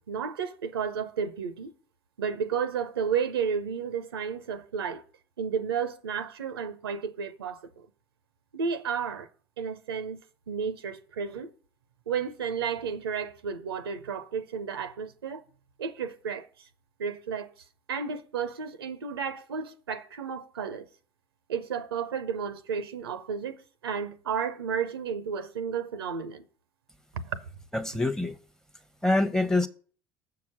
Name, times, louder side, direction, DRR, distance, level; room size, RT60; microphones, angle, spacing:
voice 1, 0.0-1.7 2.2-5.0 5.4-7.6 8.5-9.3 9.6-10.2 10.5-11.5 12.1-15.4 15.8-16.5 17.0-17.5 17.9-20.9 21.5-23.6 23.8-26.4, right 6 dB, 85° right, 0.5 m, -32 dB
voice 2, 27.7-28.3 29.0-29.7, left 2 dB, 5° left, 0.7 m, -25 dB
7.0 x 4.7 x 6.3 m
hypercardioid pair, 65°, 12 cm